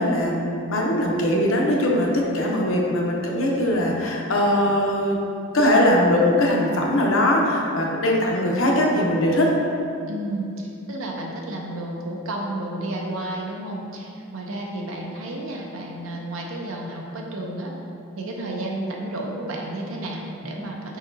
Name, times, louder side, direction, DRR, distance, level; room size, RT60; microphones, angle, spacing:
voice 1, 0.0-5.2 5.5-9.5, left 1 dB, 75° left, -1 dB, 0.7 m, -21 dB
voice 2, 10.1-17.7 18.2-21.0, right 1 dB, 80° right, -1 dB, 0.7 m, -31 dB
4.8 x 4.0 x 2.6 m, 2.7 s
head